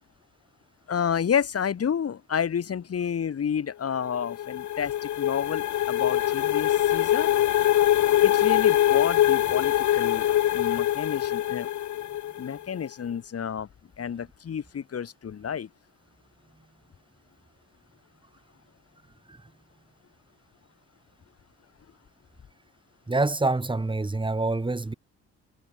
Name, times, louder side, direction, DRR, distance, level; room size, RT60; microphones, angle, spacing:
voice 1, 0.9-7.3 8.2-11.7 12.4-13.7 14.0-15.7, left 7 dB, 50° left, 6.7 m, -30 dB
sound 1, 4.0-12.6, left 12 dB, 75° left, 1.9 m, -23 dB
voice 2, 23.1-24.9, right 2 dB, 15° right, 3.3 m, -26 dB
cardioid pair, 90°, 30 cm